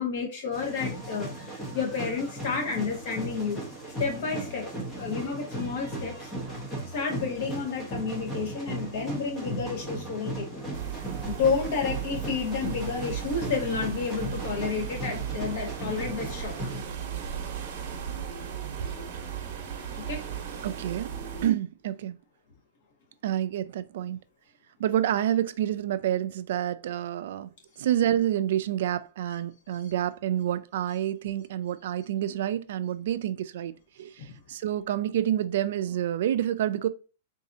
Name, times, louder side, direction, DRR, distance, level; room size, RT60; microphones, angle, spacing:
voice 1, 0.0-3.6 4.0-4.7 5.0-6.3 6.9-10.6 11.2-16.5 19.9-20.2 29.7-29.8 34.2-34.3, left 5 dB, 55° left, 1.4 m, -31 dB
sound 1, 0.5-16.8, right 1 dB, 15° left, 0.8 m, -37 dB
sound 2, 10.7-21.5, right 9 dB, 40° right, 0.9 m, -36 dB
voice 2, 20.6-21.1 21.4-22.2 23.2-24.2 24.8-27.5 27.8-33.7 34.0-36.9, right 11 dB, 60° right, 0.3 m, -28 dB
4.0 x 2.7 x 2.6 m
hypercardioid pair, 155°, 0 cm